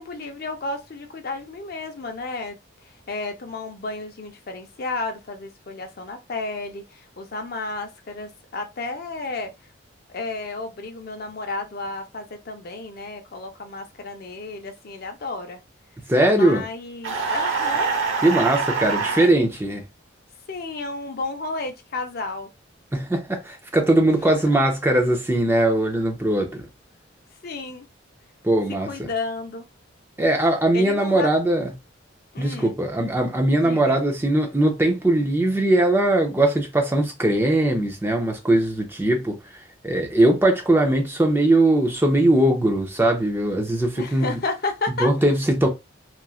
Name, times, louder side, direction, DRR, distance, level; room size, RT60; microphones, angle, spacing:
voice 1, 0.0-2.6 3.1-9.5 10.1-15.6 16.3-17.9 20.5-22.5 24.1-24.2 24.5-24.6 27.4-27.9 28.9-29.7 30.7-31.4 32.3-32.8 33.5-34.0 44.0-45.1, left 3 dB, 50° left, 0.5 m, -32 dB
voice 2, 16.1-16.6 18.2-19.8 22.9-26.6 28.4-28.9 30.2-31.7 32.4-39.4 39.8-44.3 45.0-45.7, right 1 dB, 10° right, 0.5 m, -20 dB
sound 1, 17.0-19.3, right 4 dB, 80° right, 0.8 m, -24 dB
3.0 x 2.4 x 2.3 m
head